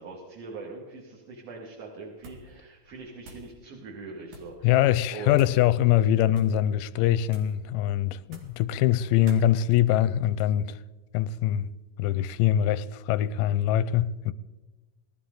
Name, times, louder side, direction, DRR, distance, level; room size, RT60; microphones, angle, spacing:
voice 1, 0.0-4.7 5.1-5.5, right 4 dB, 55° right, 3.1 m, -41 dB
sound 1, 2.2-2.6 2.8-3.5 4.2-4.6 5.3-5.7 6.3-6.6 7.3-7.6 8.2-8.6 9.3-9.5, right 1 dB, 85° right, 4.3 m, -49 dB
voice 2, 4.6-10.8 11.1-11.7 12.0-14.3, left 11 dB, 90° left, 2.3 m, -23 dB
21.0 x 13.0 x 3.9 m
omnidirectional pair, 3.8 m